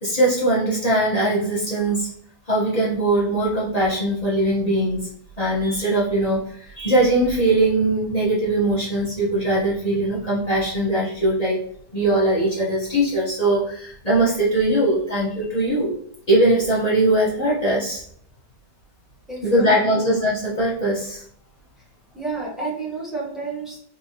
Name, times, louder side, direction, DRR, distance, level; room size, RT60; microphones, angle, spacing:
voice 1, 0.0-2.1 2.5-5.1 5.4-11.6 11.9-15.9 16.3-18.0 19.4-21.2, right 1 dB, 30° left, -8 dB, 0.9 m, -21 dB
voice 2, 19.3-20.1 22.1-23.8, right 4 dB, ahead, -6 dB, 0.7 m, -31 dB
4.1 x 3.3 x 2.8 m, 0.63 s
omnidirectional pair, 1.9 m